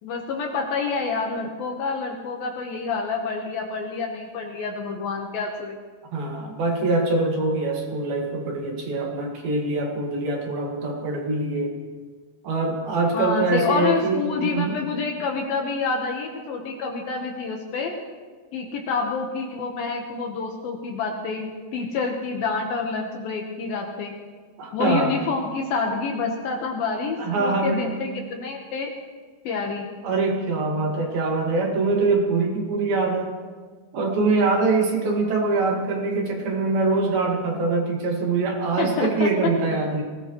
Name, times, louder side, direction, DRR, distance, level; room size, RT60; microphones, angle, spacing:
voice 1, 0.0-5.8 13.1-18.0 18.5-24.2 24.7-28.9 29.4-29.9 38.8-39.5, left 4 dB, 65° left, 1 dB, 2.6 m, -28 dB
voice 2, 6.1-11.8 12.4-14.9 24.6-25.2 27.2-27.9 30.0-33.4 33.9-40.0, right 3 dB, 60° right, 0 dB, 3.4 m, -24 dB
21.0 x 18.0 x 3.1 m, 1.5 s
omnidirectional pair, 5.1 m